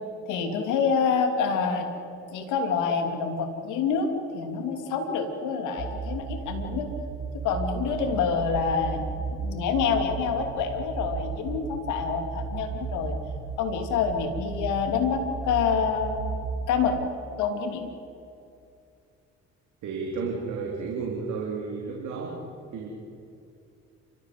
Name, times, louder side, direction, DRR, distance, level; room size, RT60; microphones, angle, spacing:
voice 1, 0.3-1.9 2.3-6.9 7.4-13.2 13.6-16.4 16.7-17.0 17.4-17.9, left 6 dB, 75° left, 5 dB, 2.9 m, -27 dB
sound 1, 5.8-17.1, right 5 dB, 55° right, 1.6 m, -35 dB
voice 2, 19.8-22.4 22.7-22.9, right 4 dB, 70° right, -1 dB, 3.5 m, -32 dB
29.5 x 14.5 x 7.8 m, 2.6 s
hypercardioid pair, 60°, 30 cm